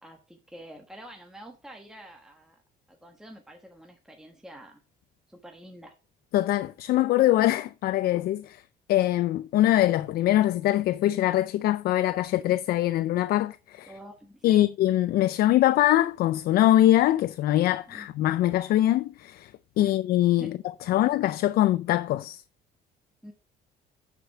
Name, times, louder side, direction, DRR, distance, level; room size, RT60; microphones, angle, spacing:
voice 1, 0.0-2.6 2.9-4.8 5.3-5.9 13.9-14.7 17.9-18.1 19.8-19.9 20.4-20.5 20.9-21.0 23.2-23.3, right 1 dB, 5° right, 1.4 m, -47 dB
voice 2, 6.3-8.6 8.9-13.9 14.4-19.5 19.8-20.5 20.9-22.4, left 14 dB, 65° left, 0.4 m, -23 dB
9.1 x 5.1 x 4.7 m
cardioid pair, 110°, 17 cm